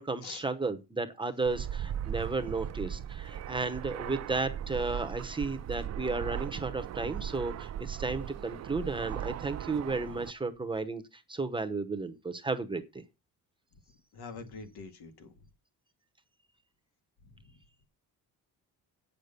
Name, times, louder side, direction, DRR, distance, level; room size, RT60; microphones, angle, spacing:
voice 1, 0.0-11.0 11.3-13.0, right 3 dB, 15° right, 0.8 m, -33 dB
Fixed-wing aircraft airplane, 1.5-10.3, right 10 dB, 45° right, 0.5 m, -38 dB
voice 2, 14.1-15.3, left 4 dB, 85° left, 2.0 m, -44 dB
8.5 x 6.7 x 6.8 m
cardioid pair, 175°, 37 cm